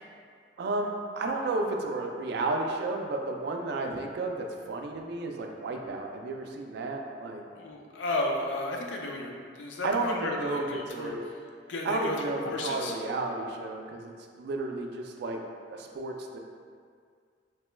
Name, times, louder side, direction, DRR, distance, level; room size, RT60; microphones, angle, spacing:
voice 1, 0.6-7.4 9.8-10.6 10.9-11.2 11.8-15.4 15.7-16.4, right 2 dB, 60° right, 2 dB, 0.3 m, -32 dB
voice 2, 7.6-11.3 11.7-13.0, left 2 dB, 80° left, 1 dB, 0.4 m, -33 dB
2.9 x 2.2 x 3.1 m, 2.1 s
head